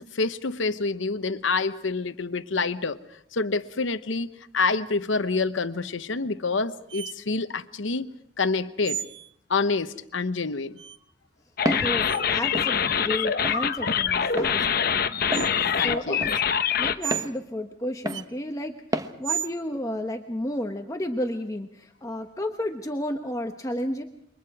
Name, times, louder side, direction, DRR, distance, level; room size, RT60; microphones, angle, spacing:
voice 1, 0.0-3.0 3.3-4.3 4.5-9.0 9.5-10.8 15.8-16.3, left 4 dB, 75° left, 0.9 m, -27 dB
sound 1, 6.9-7.1 8.8-9.3 10.8-11.0 12.0-12.2 13.1-13.2 14.6-14.7 15.3-15.5 16.3-16.4 17.0-17.3 18.1-18.3 19.2-19.5, right 8 dB, 65° right, 0.8 m, -33 dB
sound 2, 11.6-16.9, left 7 dB, 50° left, 0.9 m, -24 dB
Walk footsteps, 11.7-11.9 12.5-12.7 13.4-13.6 14.4-14.5 15.3-15.5 16.2-16.4 17.1-17.3 18.1-18.3 18.9-19.1, right 1 dB, 20° right, 1.1 m, -29 dB
voice 2, 11.8-14.7 15.8-16.4 16.8-24.0, left 1 dB, 15° left, 1.0 m, -32 dB
28.5 x 24.0 x 4.8 m
head